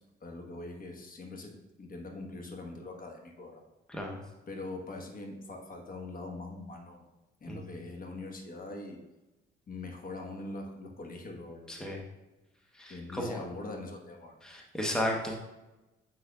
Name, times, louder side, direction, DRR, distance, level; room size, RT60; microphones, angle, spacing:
voice 1, 0.2-3.6 4.5-7.1 7.4-9.0 9.7-12.0 12.9-14.4, left 2 dB, 45° left, 2 dB, 1.3 m, -42 dB
voice 2, 11.7-12.0 12.8-13.3 14.4-15.4, left 1 dB, 5° left, 0 dB, 0.9 m, -33 dB
7.0 x 6.4 x 2.3 m, 1.0 s
cardioid pair, 90°, 20 cm